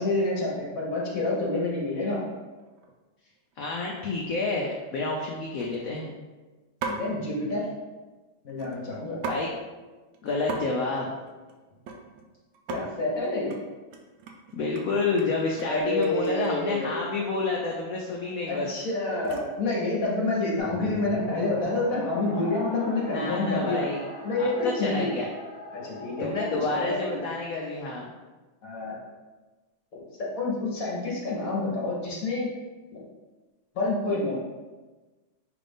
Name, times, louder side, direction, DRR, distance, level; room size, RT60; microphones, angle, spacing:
voice 1, 0.0-2.2 6.8-7.7 8.4-9.2 12.7-13.5 15.6-17.0 18.5-23.9 24.2-25.1 25.7-27.0 28.6-28.9 30.2-32.5 32.9-33.0 33.7-34.4, left 2 dB, 50° left, -4 dB, 1.2 m, -28 dB
sound 1, 2.6-2.9 3.3-3.6 4.0-4.1 4.4-4.8 5.6-6.1 6.8-7.1 8.5-9.5 9.8-9.9 10.1-10.6 10.9-12.3 12.5-12.8 13.2-13.6 13.9-16.7 17.6-17.8 18.1-19.6 20.3-20.6, right 4 dB, 80° right, 1.3 m, -39 dB
voice 2, 3.6-6.1 9.3-9.6 10.2-11.1 14.5-18.7 23.1-24.0 24.4-25.3 26.2-28.1, left 3 dB, 85° left, -1 dB, 0.7 m, -29 dB
sound 2, 20.6-27.1, left 1 dB, 5° right, 0.7 m, -39 dB
5.7 x 2.6 x 3.5 m, 1.2 s
omnidirectional pair, 2.1 m